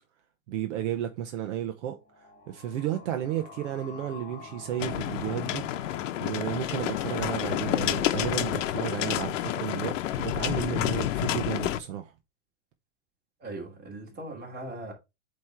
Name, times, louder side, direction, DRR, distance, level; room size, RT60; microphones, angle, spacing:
voice 1, 0.5-5.7 6.2-12.1, right 10 dB, 65° right, 1.0 m, -33 dB
sound 1, 1.9-9.4, left 2 dB, 15° left, 1.9 m, -48 dB
sound 2, 4.8-11.8, left 13 dB, 75° left, 0.8 m, -29 dB
voice 2, 13.4-14.9, right 2 dB, 30° right, 2.8 m, -39 dB
8.4 x 3.2 x 4.3 m
supercardioid pair, 165°, 38 cm